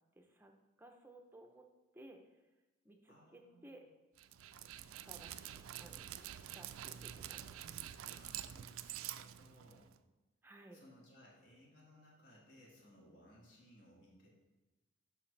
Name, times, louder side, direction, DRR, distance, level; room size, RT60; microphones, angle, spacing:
voice 1, 0.2-0.5 0.8-1.7 1.9-2.4 2.8-3.9 5.0-6.2 6.5-7.6 10.4-10.8, right 1 dB, 10° right, 4 dB, 0.5 m, -58 dB
voice 2, 3.1-3.8 8.1-10.0 10.7-14.3, left 1 dB, 55° left, -3 dB, 1.8 m, -63 dB
Dog, 4.2-10.0, right 11 dB, 90° right, 0.3 m, -47 dB
7.1 x 5.8 x 3.2 m, 1.1 s
head